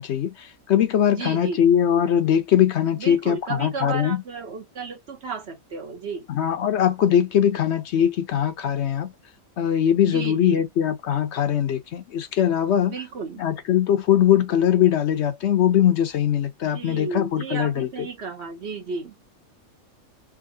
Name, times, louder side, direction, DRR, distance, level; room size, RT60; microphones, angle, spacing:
voice 1, 0.0-4.2 6.3-9.1 9.6-12.9 13.4-18.1, left 10 dB, 60° left, 0.8 m, -21 dB
voice 2, 1.1-1.6 3.0-6.3 10.1-10.6 12.9-13.4 16.7-19.1, right 5 dB, 55° right, 1.0 m, -33 dB
3.6 x 2.6 x 2.6 m
omnidirectional pair, 1.5 m